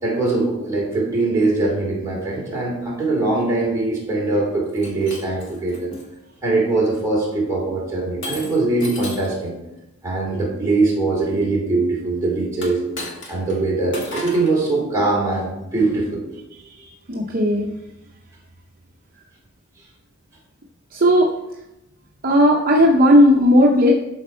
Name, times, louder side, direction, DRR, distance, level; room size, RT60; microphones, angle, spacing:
voice 1, 0.0-5.9 6.4-9.6 10.0-12.8 13.3-16.2, right 2 dB, 15° right, -5 dB, 3.0 m, -22 dB
Shatter, 4.7-6.1 6.7-7.0 8.2-9.4 12.5-13.6 13.9-14.6, left 1 dB, 55° left, 2.0 m, -34 dB
voice 2, 16.8-17.7 20.9-21.3 22.2-23.9, equal, 40° right, -1 dB, 0.7 m, -15 dB
12.0 x 4.4 x 4.4 m, 0.93 s
head